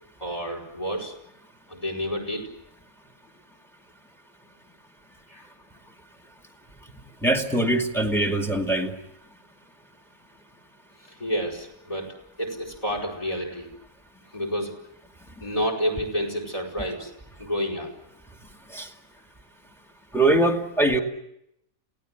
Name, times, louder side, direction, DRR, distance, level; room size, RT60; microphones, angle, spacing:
voice 1, 0.2-1.1 1.7-2.5 5.3-5.4 11.0-13.7 14.3-14.7 15.4-17.1 17.4-17.9, equal, 25° left, 3 dB, 4.9 m, -29 dB
voice 2, 7.2-8.9 18.7-18.9 20.1-21.0, right 1 dB, ahead, 4 dB, 2.2 m, -22 dB
28.5 x 17.5 x 9.3 m, 0.81 s
omnidirectional pair, 1.4 m